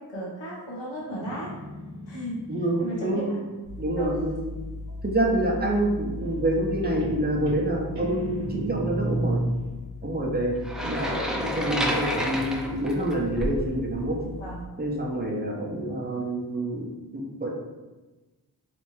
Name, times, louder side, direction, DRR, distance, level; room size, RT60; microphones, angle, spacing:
voice 1, 0.0-1.5 2.1-2.4 2.8-3.4 4.0-4.1 14.4-14.6, right 1 dB, 90° left, -5 dB, 1.2 m, -34 dB
Guitar, 1.1-4.7 6.2-6.6 6.8-9.8, right 1 dB, 70° right, 0.9 m, -33 dB
voice 2, 2.5-3.4 3.8-4.5 5.0-9.4 10.0-10.5 10.8-14.2 14.8-17.5, right 1 dB, 20° right, -2 dB, 0.8 m, -27 dB
sound 1, 3.6-14.6, left 2 dB, 55° left, 1.3 m, -39 dB
sound 2, 10.6-13.7, equal, ahead, 0.4 m, -29 dB
3.3 x 2.9 x 3.1 m, 1.2 s
cardioid pair, 60°, 42 cm